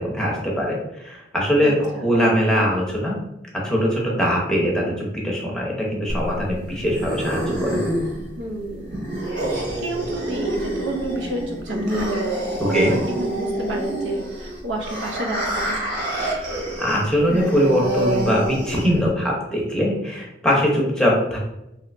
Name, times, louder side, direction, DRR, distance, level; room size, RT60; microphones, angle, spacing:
voice 1, 0.0-3.1 3.6-7.8 12.6-12.9 16.2-21.4, equal, 5° left, -3 dB, 0.6 m, -22 dB
voice 2, 1.6-2.1 8.4-9.1 9.8-12.2 12.6-15.8, right 2 dB, 85° right, 2 dB, 0.6 m, -30 dB
sound 1, 6.1-19.1, right 1 dB, 65° right, 1.4 m, -27 dB
3.1 x 2.8 x 2.5 m, 0.89 s
head